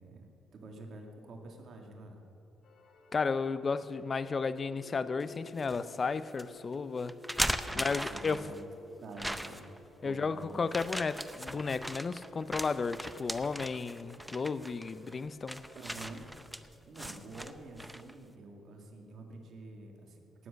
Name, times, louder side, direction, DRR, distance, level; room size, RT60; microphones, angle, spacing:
voice 1, 0.0-2.2 7.7-8.7 9.0-10.6 15.7-16.3 16.9-20.5, right 2 dB, 60° right, 2 dB, 2.1 m, -48 dB
sound 1, 2.6-15.8, left 5 dB, 70° left, 1.9 m, -56 dB
voice 2, 3.1-7.1 7.8-8.4 10.0-15.6, left 4 dB, 35° left, 14 dB, 0.5 m, -33 dB
sound 2, 5.2-5.8 6.4-6.5 7.1-8.6 9.2-9.8 10.7-18.1, equal, 5° right, 0.6 m, -38 dB
18.0 x 7.6 x 6.5 m, 3.0 s
cardioid pair, 90°, 0 cm